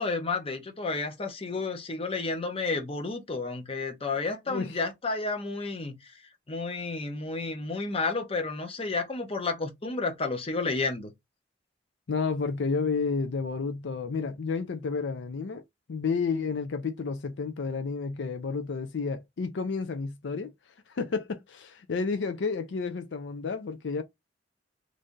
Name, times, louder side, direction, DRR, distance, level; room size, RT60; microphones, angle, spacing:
voice 1, 0.0-6.1 6.5-11.1, left 3 dB, 30° left, 0.8 m, -31 dB
voice 2, 4.5-4.8 12.1-15.6 15.9-20.5 20.9-24.0, left 4 dB, 75° left, 0.5 m, -31 dB
3.2 x 2.6 x 3.7 m
head